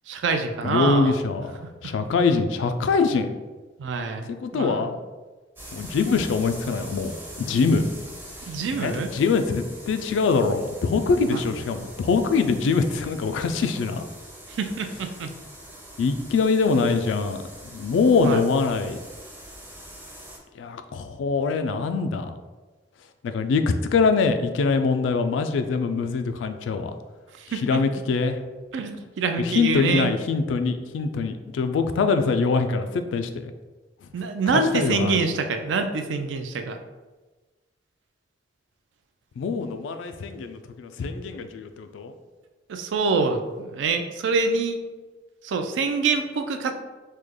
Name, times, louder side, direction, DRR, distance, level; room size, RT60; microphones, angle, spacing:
voice 1, 0.1-1.2 1.6-1.9 3.8-4.9 8.5-9.1 11.3-11.4 14.5-15.3 18.2-18.4 27.4-27.8 28.7-30.1 34.1-36.8 42.7-44.8 45.4-46.7, right 4 dB, 80° right, 7 dB, 0.4 m, -26 dB
voice 2, 0.6-1.5 1.8-3.3 4.3-5.0 5.7-7.1 7.4-7.9 8.8-14.0 16.0-19.0 20.6-22.3 23.2-23.6 23.9-26.9 27.6-28.4 29.4-33.5 34.7-35.2 39.4-42.1, left 4 dB, 90° left, 8 dB, 0.3 m, -23 dB
sound 1, 5.6-20.4, right 1 dB, 10° right, 0.5 m, -43 dB
3.2 x 2.2 x 3.5 m, 1.2 s
head